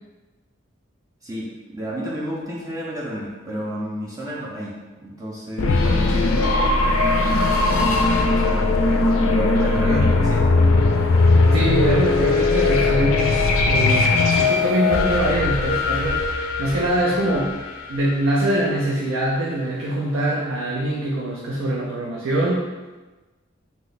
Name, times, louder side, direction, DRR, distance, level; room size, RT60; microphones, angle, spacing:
voice 1, 1.2-8.7 9.2-10.8, equal, 15° right, -5 dB, 0.4 m, -32 dB
sound 1, 5.6-18.3, left 3 dB, 85° left, 0.4 m, -19 dB
voice 2, 11.5-16.2 16.6-17.6 17.9-22.9, right 1 dB, 75° right, -3 dB, 0.4 m, -23 dB
2.8 x 2.1 x 3.9 m, 1.2 s
head